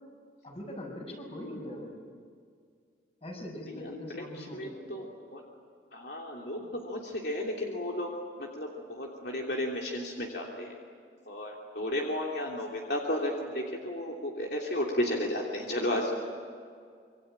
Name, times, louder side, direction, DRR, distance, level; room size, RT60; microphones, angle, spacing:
voice 1, 0.4-2.1 3.2-5.2 6.6-6.7, left 1 dB, 35° left, 1 dB, 6.3 m, -42 dB
voice 2, 4.5-5.0 5.3-5.4 5.9-8.1 8.4-10.7 11.2-16.1, left 1 dB, 65° left, -1 dB, 3.2 m, -33 dB
26.5 x 24.5 x 8.8 m, 2.2 s
head